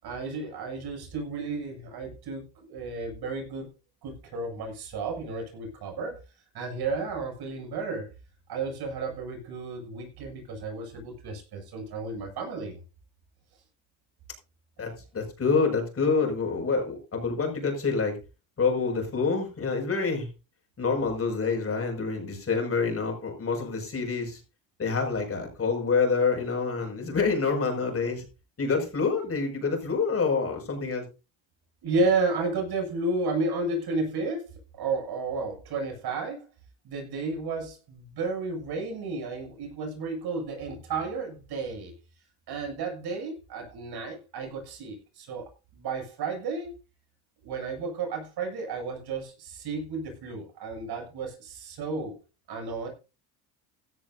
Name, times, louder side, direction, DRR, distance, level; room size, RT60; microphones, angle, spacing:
voice 1, 0.0-2.4 2.7-3.7 4.0-6.2 6.5-8.1 8.5-12.8 14.8-14.9 31.8-34.5 34.8-36.5 36.8-41.9 42.5-46.7 47.4-52.2 52.5-52.9, right 3 dB, 60° right, 3 dB, 7.5 m, -32 dB
voice 2, 14.8-18.2 18.6-20.3 20.8-24.4 24.8-28.2 28.6-31.0, left 4 dB, 30° left, 3 dB, 6.1 m, -27 dB
16.0 x 13.0 x 2.7 m, 0.31 s
cardioid pair, 110°, 43 cm